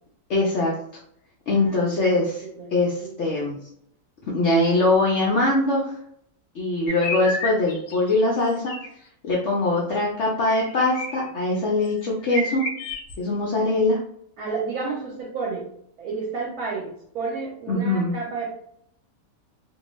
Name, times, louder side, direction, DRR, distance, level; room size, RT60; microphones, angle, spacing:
voice 1, 0.3-0.7 1.5-2.4 2.7-3.6 4.3-5.9 6.5-8.7 9.2-12.6 13.2-14.0 17.7-18.1, left 2 dB, 70° left, -3 dB, 0.7 m, -22 dB
voice 2, 1.5-2.2 2.6-3.3 14.4-15.7 16.0-16.9 17.1-18.6, right 4 dB, 70° right, -3 dB, 1.0 m, -31 dB
sound 1, 6.9-8.2 8.7-8.9 10.5-11.3 11.9-12.0 12.2-13.1, left 1 dB, 90° left, 1.2 m, -31 dB
2.6 x 2.2 x 3.0 m, 0.69 s
omnidirectional pair, 1.8 m